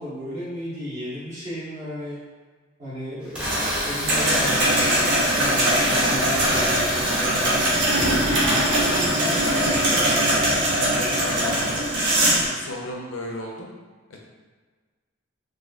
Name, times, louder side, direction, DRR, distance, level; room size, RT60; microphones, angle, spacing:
voice 1, 0.0-2.2 2.8-7.8, left 1 dB, 35° right, -15 dB, 1.2 m, -34 dB
sound 1, 3.2-11.8, equal, 5° right, 0.7 m, -30 dB
sound 2, 3.4-12.5, right 1 dB, 60° right, 0.9 m, -21 dB
voice 2, 9.3-11.9 12.5-13.7 14.1-14.2, left 2 dB, 75° left, -1 dB, 0.6 m, -35 dB
4.0 x 2.6 x 2.4 m, 1.4 s
head